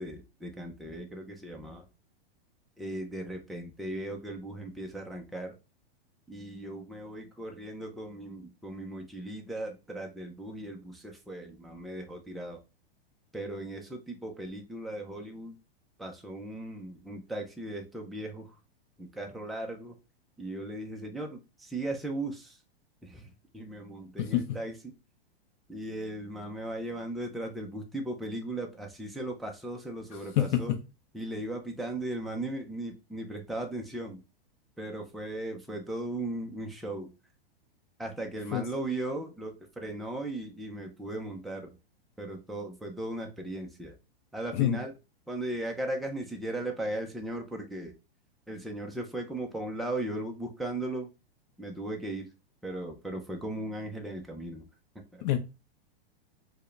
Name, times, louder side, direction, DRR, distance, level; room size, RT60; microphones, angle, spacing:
voice 1, 0.0-1.9 2.8-5.5 6.3-12.6 13.3-15.6 16.0-18.5 19.0-20.0 20.4-22.6 23.0-24.9 25.7-30.8 31.1-34.2 34.8-37.1 38.0-41.8 42.2-43.9 44.3-44.9 45.3-47.9 48.5-51.1 51.6-52.3 52.6-54.7 55.0-55.2, right 1 dB, ahead, 0.4 m, -37 dB
voice 2, 30.4-30.8 38.5-38.6 44.5-44.8 55.2-55.4, left 12 dB, 50° left, 0.6 m, -26 dB
4.4 x 2.1 x 3.2 m
hypercardioid pair, 130°, 30 cm